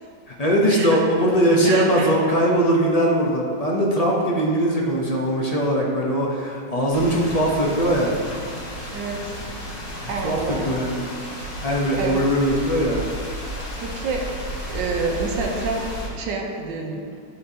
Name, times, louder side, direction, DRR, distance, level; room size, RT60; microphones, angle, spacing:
voice 1, 0.4-8.1 10.2-11.1 11.6-13.0, equal, 40° left, -3 dB, 0.5 m, -20 dB
voice 2, 1.6-2.2 8.9-9.2 10.1-10.8 12.0-12.2 13.8-14.2 14.7-17.2, right 4 dB, 85° right, 1 dB, 1.5 m, -28 dB
sound 1, 6.9-16.1, equal, 85° left, 2.0 m, -33 dB
11.5 x 4.4 x 2.8 m, 2.3 s
omnidirectional pair, 1.9 m